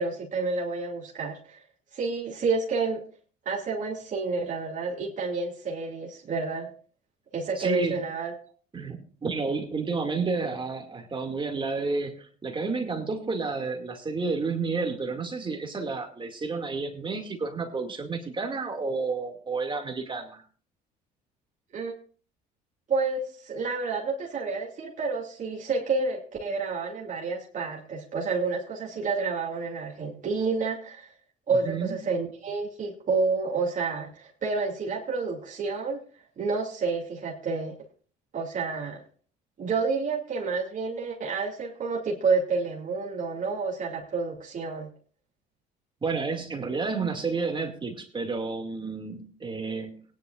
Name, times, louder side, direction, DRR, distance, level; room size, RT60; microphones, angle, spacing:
voice 1, 0.0-1.6 1.9-3.0 3.5-6.7 7.3-8.3 21.7-22.0 22.9-31.1 31.5-36.0 36.4-37.7 38.3-39.0 39.6-44.9, right 4 dB, 45° right, -2 dB, 2.6 m, -29 dB
voice 2, 7.6-8.0 8.7-20.4 31.6-31.9 46.0-50.0, right 4 dB, 30° right, 4 dB, 2.3 m, -31 dB
19.0 x 10.5 x 2.5 m, 0.42 s
supercardioid pair, 85°, 18 cm